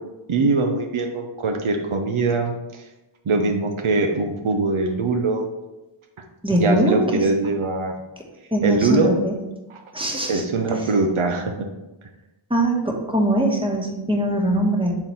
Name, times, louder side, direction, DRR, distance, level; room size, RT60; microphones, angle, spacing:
voice 1, 0.3-2.5 3.3-5.4 6.5-7.9 8.6-9.1 10.3-11.5, right 3 dB, 75° right, 3 dB, 0.8 m, -22 dB
voice 2, 6.4-7.2 8.5-9.3 9.9-10.4 12.5-14.9, right 1 dB, 10° right, 0 dB, 1.3 m, -21 dB
4.6 x 3.7 x 5.6 m, 1.0 s
wide cardioid pair, 55°, 49 cm